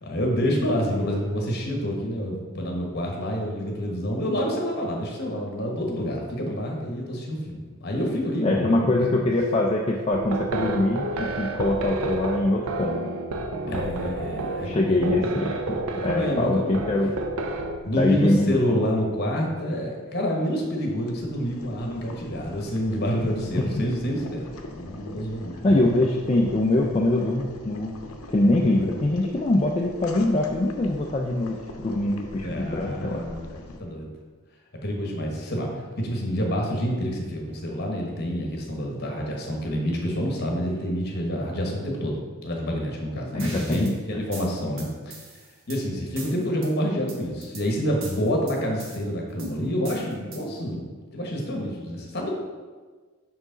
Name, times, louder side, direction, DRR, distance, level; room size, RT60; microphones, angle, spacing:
voice 1, 0.0-8.9 13.7-15.4 15.9-16.8 17.8-25.9 32.4-34.1 34.8-42.2 42.4-45.2 45.7-50.8 51.1-52.3, equal, 50° left, 0 dB, 1.1 m, -28 dB
voice 2, 8.4-13.2 13.7-14.3 14.6-17.1 18.0-18.8 23.6-23.9 25.6-28.0 28.3-33.2 43.3-44.2, left 2 dB, 30° left, -1 dB, 0.4 m, -24 dB
sound 1, 10.1-17.8, right 2 dB, 85° right, 0.5 m, -30 dB
Boiling, 21.0-33.8, left 2 dB, 80° left, 0.7 m, -42 dB
sound 2, 43.4-43.9 44.3-45.8 46.2-46.7 47.1-47.6 48.0-49.0 49.4-50.6, right 3 dB, 65° right, 1.0 m, -41 dB
5.8 x 4.8 x 3.9 m, 1.4 s
head